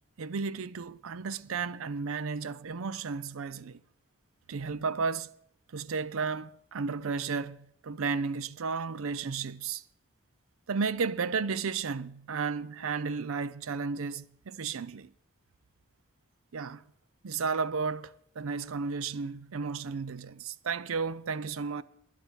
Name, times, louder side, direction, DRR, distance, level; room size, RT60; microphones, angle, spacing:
voice 1, 0.2-3.8 4.5-5.3 5.7-7.6 7.8-9.8 10.7-15.1 16.5-16.8 17.2-21.8, right 5 dB, 70° right, 0.5 m, -33 dB
12.5 x 10.5 x 6.9 m
head